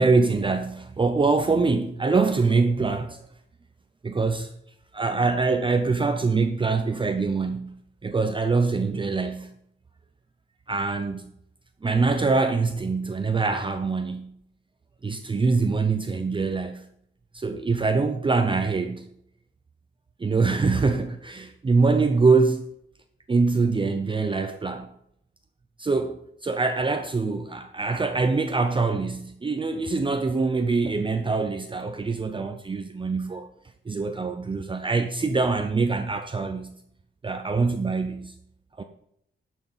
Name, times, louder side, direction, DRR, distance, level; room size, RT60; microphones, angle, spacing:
voice 1, 0.0-3.2 4.0-4.5 4.9-9.5 10.7-11.3 11.8-14.3 15.0-16.9 17.3-19.1 20.2-22.7 23.3-24.9 25.8-33.5 33.9-36.7 37.2-38.4 38.8-38.9, right 4 dB, 25° right, 0.6 m, -24 dB
11.5 x 6.3 x 5.6 m
wide cardioid pair, 160°, 21 cm